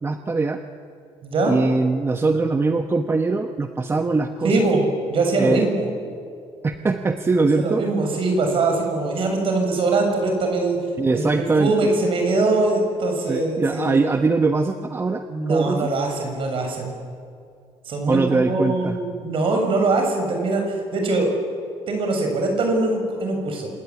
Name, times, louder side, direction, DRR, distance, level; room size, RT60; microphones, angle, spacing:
voice 1, 0.0-0.6 1.5-4.6 5.4-5.6 6.6-7.8 11.0-11.9 13.3-15.9 18.1-19.0, right 3 dB, 20° right, 7 dB, 1.2 m, -22 dB
voice 2, 1.2-1.6 4.4-4.8 5.1-5.9 7.6-10.8 11.1-11.3 11.6-13.9 15.3-16.9 17.9-20.6 20.9-21.3 21.9-23.7, right 3 dB, 55° right, 3 dB, 7.3 m, -22 dB
27.5 x 17.5 x 9.9 m, 2.4 s
cardioid pair, 125°, 11 cm